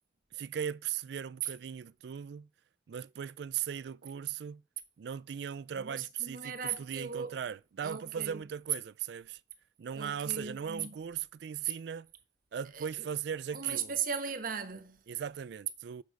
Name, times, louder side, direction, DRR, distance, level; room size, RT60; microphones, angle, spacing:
voice 1, 0.3-2.5 2.9-4.6 5.0-9.4 9.8-12.1 12.5-14.0 15.1-16.0, right 8 dB, 65° right, 0.3 m, -38 dB
voice 2, 5.7-7.3 7.8-8.4 9.9-10.9 12.7-12.9 13.5-15.0, right 7 dB, 50° right, 1.1 m, -37 dB
8.4 x 6.3 x 4.6 m
head